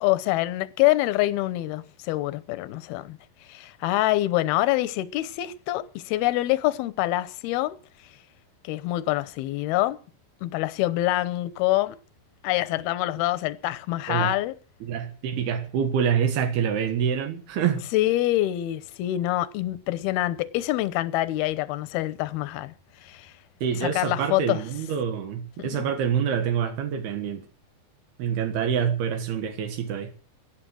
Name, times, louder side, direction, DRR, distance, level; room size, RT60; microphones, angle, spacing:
voice 1, 0.0-3.2 3.5-7.8 8.6-10.0 10.4-12.0 12.4-14.6 17.9-22.7 23.0-23.3 23.8-24.6 25.6-25.8, left 16 dB, 85° left, 2.7 m, -25 dB
voice 2, 14.8-17.8 23.6-27.5 28.2-30.1, right 8 dB, 85° right, 3.5 m, -26 dB
16.5 x 10.5 x 6.3 m
omnidirectional pair, 4.4 m